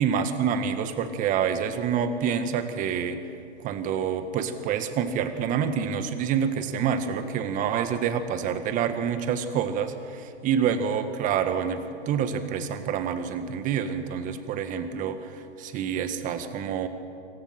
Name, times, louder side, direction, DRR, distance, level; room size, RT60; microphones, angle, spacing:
voice 1, 0.0-3.2 3.6-16.9, right 7 dB, 25° right, 9 dB, 1.6 m, -27 dB
26.0 x 23.0 x 5.9 m, 2.4 s
hypercardioid pair, 135°, 35 cm